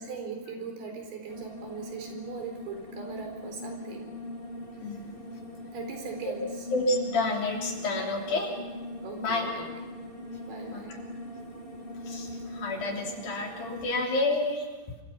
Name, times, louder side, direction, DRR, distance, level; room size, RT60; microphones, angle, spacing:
voice 1, 0.0-4.1 5.7-6.7 9.0-9.7 10.5-10.9, right 5 dB, 80° right, 3 dB, 6.2 m, -39 dB
sound 1, 1.3-14.0, left 1 dB, 30° left, 1.0 m, -41 dB
voice 2, 6.7-8.6 9.2-9.5 10.7-11.0 12.1-14.7, left 2 dB, 70° left, 1 dB, 5.0 m, -29 dB
27.0 x 25.0 x 5.9 m, 1.3 s
omnidirectional pair, 4.4 m